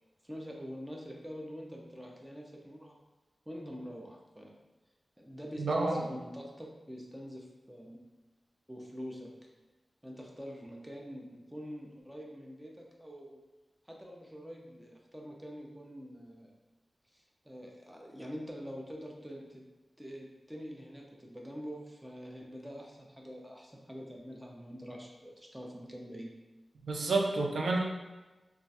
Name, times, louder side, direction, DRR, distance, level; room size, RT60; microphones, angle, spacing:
voice 1, 0.2-3.0 3.5-4.5 5.2-8.0 8.7-9.3 10.0-13.4 13.8-16.5 17.1-19.6 20.0-26.3, equal, 10° right, -1 dB, 0.5 m, -45 dB
voice 2, 5.6-6.1 26.9-27.8, right 3 dB, 90° right, 0 dB, 0.4 m, -29 dB
2.3 x 2.2 x 4.0 m, 1.2 s
wide cardioid pair, 120°, 0 cm